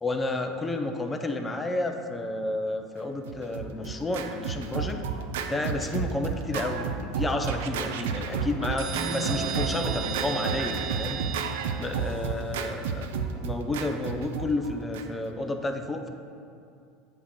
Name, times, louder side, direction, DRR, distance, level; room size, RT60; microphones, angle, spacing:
voice 1, 0.0-5.0 5.4-11.2 11.8-16.1, left 2 dB, 15° left, 5 dB, 0.6 m, -31 dB
Scratching (performance technique), 3.2-15.3, right 6 dB, 85° right, 0.4 m, -32 dB
sound 1, 8.8-12.3, right 6 dB, 35° right, 0.9 m, -34 dB
8.0 x 2.9 x 6.1 m, 2.5 s
supercardioid pair, 110°, 0 cm